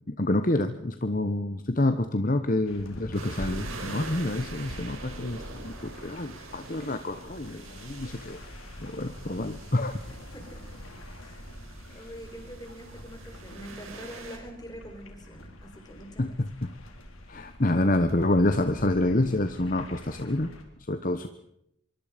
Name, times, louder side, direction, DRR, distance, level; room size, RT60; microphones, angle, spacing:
voice 1, 0.2-8.4 8.8-10.0 16.2-16.7 17.3-20.5 20.9-21.3, left 1 dB, 40° left, 9 dB, 1.1 m, -27 dB
sound 1, 2.7-20.6, equal, 85° left, 3.9 m, -45 dB
sound 2, 3.1-14.4, right 3 dB, 85° right, 5.6 m, -45 dB
voice 2, 10.1-10.7 11.2-11.4 11.9-16.3, equal, 20° left, 4 dB, 4.6 m, -45 dB
25.0 x 23.5 x 5.2 m, 0.76 s
head